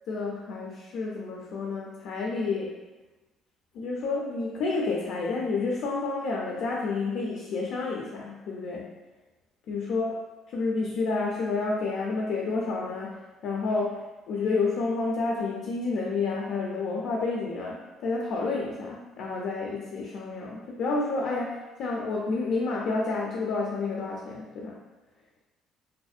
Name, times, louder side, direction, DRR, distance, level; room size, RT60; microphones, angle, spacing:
voice 1, 0.1-2.8 3.7-8.9 9.7-10.2 10.5-24.8, left 3 dB, 70° left, -2 dB, 0.4 m, -30 dB
2.5 x 2.1 x 2.4 m, 1.1 s
cardioid pair, 90°, 0 cm